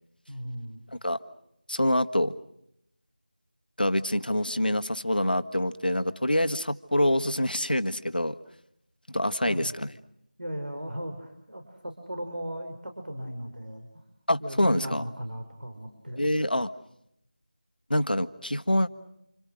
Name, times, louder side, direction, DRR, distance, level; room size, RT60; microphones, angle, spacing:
voice 1, 0.3-0.8 9.4-9.7 10.4-14.0 14.4-16.3, equal, 75° right, 5 dB, 5.3 m, -37 dB
voice 2, 1.7-2.3 3.8-8.4 9.1-9.9 14.3-15.0 16.2-16.7 17.9-18.9, left 1 dB, 80° left, 9 dB, 1.7 m, -26 dB
30.0 x 28.0 x 6.4 m, 0.77 s
figure-of-eight pair, 170°, 5 cm